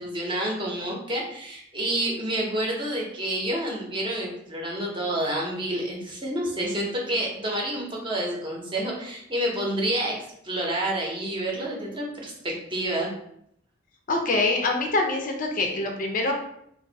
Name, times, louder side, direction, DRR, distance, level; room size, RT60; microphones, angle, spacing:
voice 1, 0.0-10.1 10.4-13.1, right 1 dB, 25° right, -2 dB, 0.8 m, -29 dB
voice 2, 14.1-16.3, left 2 dB, 45° left, 2 dB, 0.5 m, -25 dB
2.6 x 2.6 x 3.9 m, 0.72 s
head